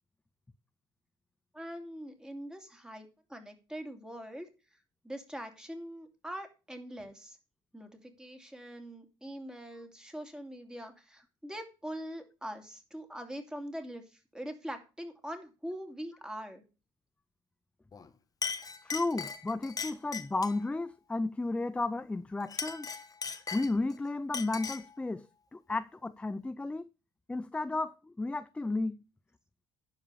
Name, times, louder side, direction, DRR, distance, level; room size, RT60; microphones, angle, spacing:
voice 1, 1.5-4.5 5.0-7.4 7.7-16.6, equal, 5° right, 2.7 m, -43 dB
Chink clink, 17.9-18.1 18.4-20.6 22.4-23.9 24.3-24.9, left 5 dB, 30° left, 1.3 m, -38 dB
voice 2, 18.8-22.9 23.5-25.3 25.5-26.9 27.3-29.0, left 2 dB, 10° left, 0.5 m, -33 dB
11.5 x 4.9 x 6.8 m
hypercardioid pair, 65°, 12 cm